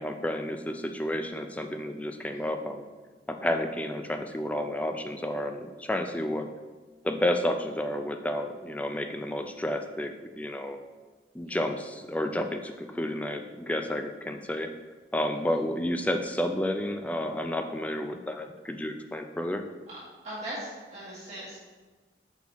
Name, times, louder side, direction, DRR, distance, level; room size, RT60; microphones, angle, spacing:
voice 1, 0.0-2.8 3.3-6.5 7.0-10.8 11.3-14.7 15.1-19.6, left 1 dB, 10° left, 5 dB, 0.3 m, -31 dB
voice 2, 20.2-21.6, right 1 dB, 40° right, -10 dB, 1.5 m, -40 dB
5.6 x 4.6 x 4.0 m, 1.3 s
head